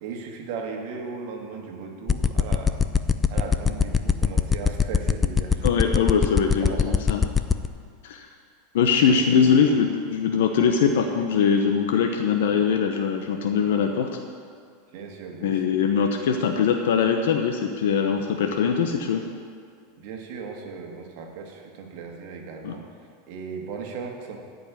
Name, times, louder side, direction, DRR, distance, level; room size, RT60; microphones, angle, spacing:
voice 1, 0.0-2.8 3.3-5.7 6.5-7.2 9.1-9.8 14.9-15.7 20.0-22.8 23.3-24.4, right 5 dB, 55° right, 1 dB, 1.8 m, -37 dB
sound 1, 2.1-7.7, left 6 dB, 10° left, 0.4 m, -20 dB
voice 2, 5.6-7.2 8.0-8.3 8.7-14.1 15.4-19.2 22.6-22.8, left 6 dB, 75° left, 4 dB, 1.0 m, -22 dB
13.5 x 5.3 x 8.6 m, 2.1 s
supercardioid pair, 160°, 0 cm